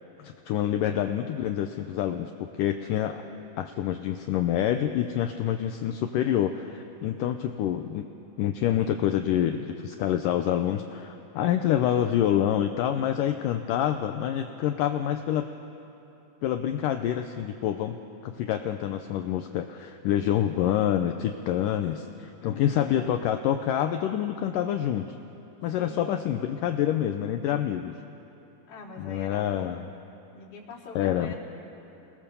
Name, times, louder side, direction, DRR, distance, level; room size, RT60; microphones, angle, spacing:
voice 1, 0.2-3.2 3.6-8.1 8.4-15.5 16.4-18.0 18.2-25.1 25.6-28.0 29.0-29.9 31.0-31.3, left 10 dB, 80° left, 7 dB, 1.9 m, -27 dB
voice 2, 22.4-23.0 25.8-26.3 28.7-29.9 30.3-31.4, left 4 dB, 55° left, -6 dB, 5.1 m, -43 dB
29.5 x 20.5 x 7.0 m, 2.9 s
omnidirectional pair, 4.6 m